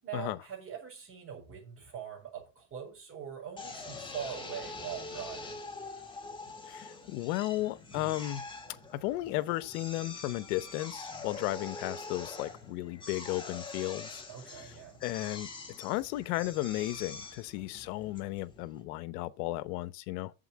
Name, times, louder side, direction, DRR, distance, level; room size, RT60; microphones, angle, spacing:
voice 1, 0.0-5.6 14.3-15.0, right 8 dB, 30° right, 6.3 m, -42 dB
Drill, 3.6-18.8, left 3 dB, 10° left, 2.0 m, -45 dB
voice 2, 6.6-8.4 8.9-14.2 14.6-14.7 15.0-15.5 15.8-20.3, left 17 dB, 75° left, 1.0 m, -34 dB
7.9 x 7.5 x 6.0 m
supercardioid pair, 140°, 45 cm